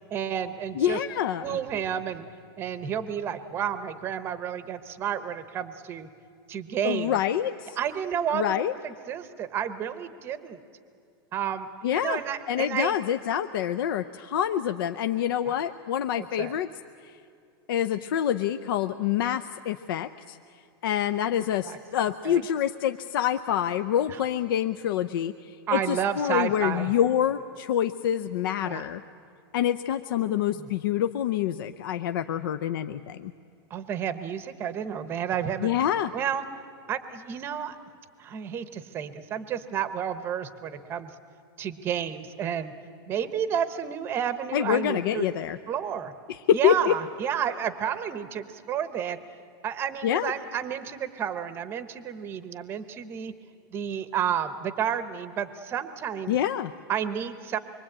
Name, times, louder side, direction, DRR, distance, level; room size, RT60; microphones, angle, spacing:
voice 1, 0.1-1.0 1.4-2.3 2.6-6.1 6.5-7.2 7.8-8.6 8.8-10.6 11.3-12.9 15.4-15.6 16.2-16.5 21.6-21.8 22.2-22.4 24.1-24.2 25.7-26.9 28.6-28.9 30.2-30.7 33.7-35.8 36.1-36.4 36.9-37.8 38.2-41.1 41.6-42.7 43.1-45.3 45.7-46.1 46.5-49.2 49.6-53.3 53.7-56.4 56.9-57.6, right 9 dB, 15° right, 12 dB, 0.9 m, -31 dB
voice 2, 0.7-1.6 6.8-7.8 8.3-8.7 11.8-12.2 12.5-16.7 17.0-17.2 17.7-20.4 20.8-29.0 29.5-33.3 35.6-36.1 44.5-45.6 46.3-46.9 50.0-50.3 56.3-56.7, left 10 dB, 60° left, 9 dB, 0.6 m, -26 dB
25.5 x 23.0 x 8.8 m, 2.5 s
supercardioid pair, 175°, 13 cm